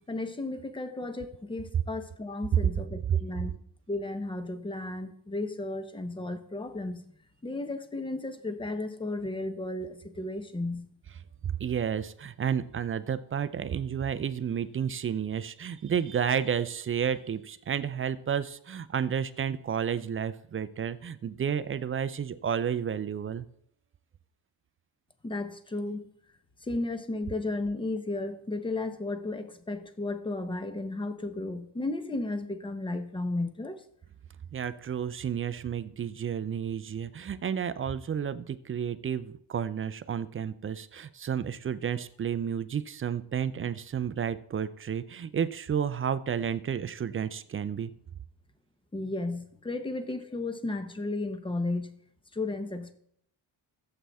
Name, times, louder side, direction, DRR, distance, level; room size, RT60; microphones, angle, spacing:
voice 1, 0.1-3.5 3.9-7.0 7.4-10.9 25.2-26.1 26.6-33.8 48.9-51.9 52.3-52.9, left 2 dB, 10° left, 0.7 m, -34 dB
voice 2, 11.4-23.4 34.5-47.9, right 8 dB, 30° right, 0.4 m, -31 dB
15.5 x 7.7 x 3.5 m
cardioid pair, 160°, 47 cm